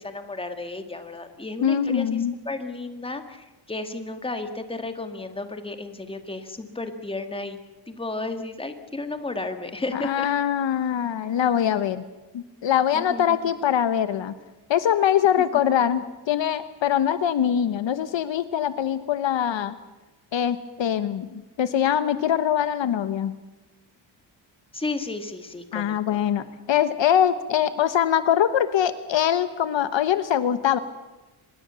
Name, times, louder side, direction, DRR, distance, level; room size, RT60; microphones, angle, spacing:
voice 1, 0.0-7.6 7.9-10.3 12.9-13.5 24.7-26.2, left 3 dB, 10° left, 7 dB, 1.9 m, -33 dB
voice 2, 1.6-2.3 9.9-12.0 12.3-14.3 14.7-19.7 20.3-23.3 25.7-30.8, left 9 dB, 60° left, 12 dB, 1.2 m, -23 dB
25.0 x 21.0 x 6.9 m, 1.1 s
wide cardioid pair, 145°, 50 cm